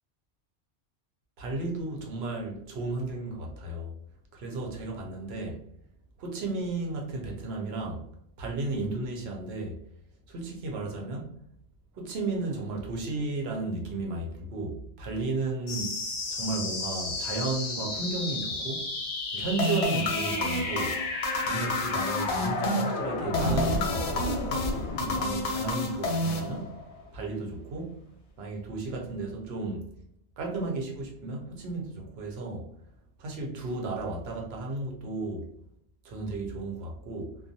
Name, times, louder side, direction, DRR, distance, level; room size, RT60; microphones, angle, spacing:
voice 1, 1.4-3.9 4.3-5.6 6.2-8.1 8.4-9.8 10.3-11.4 11.9-16.0 16.3-18.9 19.3-21.0 21.4-24.4 25.0-26.8 27.1-28.0 28.4-29.9 30.4-32.7 33.2-35.5 36.0-37.4, right 3 dB, 70° right, 0.9 m, -34 dB
sound 1, 15.7-26.7, left 3 dB, 55° left, 0.7 m, -33 dB
sound 2, 19.6-27.0, left 2 dB, 85° left, 0.9 m, -30 dB
2.3 x 2.1 x 2.6 m
omnidirectional pair, 1.1 m